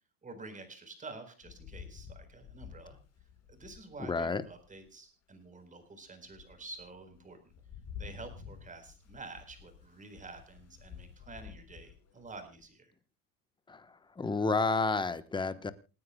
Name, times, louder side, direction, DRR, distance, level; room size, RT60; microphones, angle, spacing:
voice 1, 0.2-3.0 3.5-7.4 8.0-12.9, right 3 dB, 15° right, 4.2 m, -49 dB
Rain, 1.4-4.9 5.5-5.6 6.1-12.6, left 8 dB, 35° left, 5.2 m, -51 dB
voice 2, 4.1-4.4 13.7-13.8 14.2-15.7, left 3 dB, 10° left, 1.0 m, -30 dB
28.5 x 9.6 x 2.2 m
supercardioid pair, 135°, 44 cm